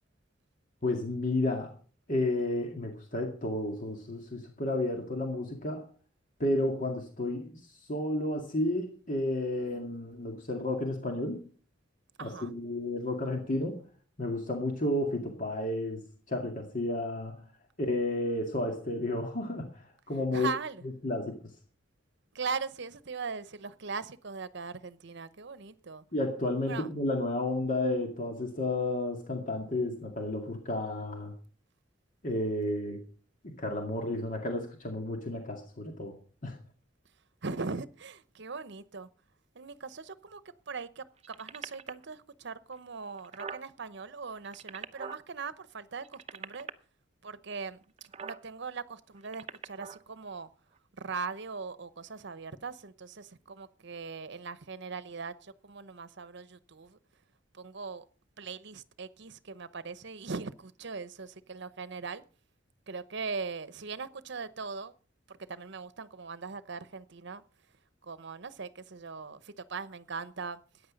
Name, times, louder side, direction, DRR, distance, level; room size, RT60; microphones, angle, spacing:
voice 1, 0.8-1.7 2.1-5.8 6.4-7.6 7.9-11.4 12.2-13.8 14.2-17.4 17.8-20.5 21.0-21.3 26.1-31.3 32.2-33.0 33.4-36.2 36.4-36.6, left 1 dB, 45° left, 2.2 m, -32 dB
voice 2, 12.2-12.5 20.3-20.8 22.3-26.0 26.7-26.9 37.4-39.1 39.5-40.4 40.7-46.7 47.2-50.5 51.0-57.0 57.5-58.0 58.4-62.2 62.9-64.9 65.3-67.4 68.0-70.6, right 4 dB, 60° right, 0.9 m, -40 dB
sound 1, 41.2-42.0 42.7-42.8 43.0-43.6 44.3-45.2 46.0-46.7 48.0-48.4 49.2-50.0 50.8-50.9, right 6 dB, 30° right, 0.7 m, -42 dB
15.0 x 9.5 x 5.2 m
head